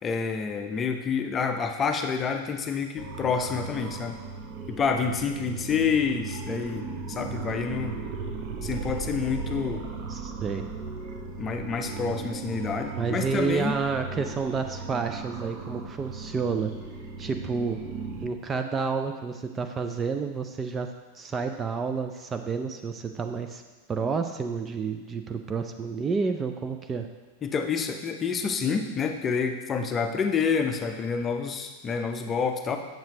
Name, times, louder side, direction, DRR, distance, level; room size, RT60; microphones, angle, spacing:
voice 1, 0.0-4.2 4.7-8.0 8.6-9.8 11.4-13.8 27.4-32.8, left 5 dB, 25° left, 6 dB, 0.6 m, -28 dB
sound 1, 3.0-18.3, right 4 dB, 40° right, 0.9 m, -37 dB
voice 2, 10.1-10.7 13.0-16.7 17.2-17.8 18.2-20.9 21.1-23.6 23.9-27.1, right 5 dB, 20° right, 6 dB, 0.4 m, -30 dB
7.4 x 7.4 x 2.8 m, 1.3 s
figure-of-eight pair, 90°, 0 cm